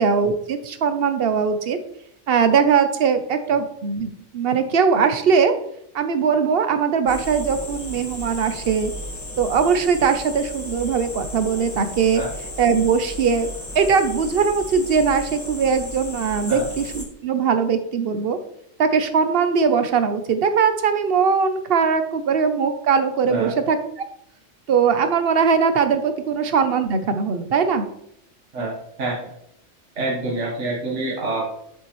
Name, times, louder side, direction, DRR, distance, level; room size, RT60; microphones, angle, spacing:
voice 1, 0.0-1.8 2.3-5.5 5.9-8.9 9.4-12.2 12.6-18.4 18.8-23.8 24.7-27.9, right 6 dB, 55° right, 9 dB, 0.9 m, -20 dB
sound 1, 7.1-17.0, equal, 15° left, 1.2 m, -34 dB
voice 2, 29.0-29.3 29.9-31.5, right 2 dB, 75° right, -3 dB, 1.6 m, -27 dB
7.1 x 7.0 x 3.1 m, 0.73 s
omnidirectional pair, 1.3 m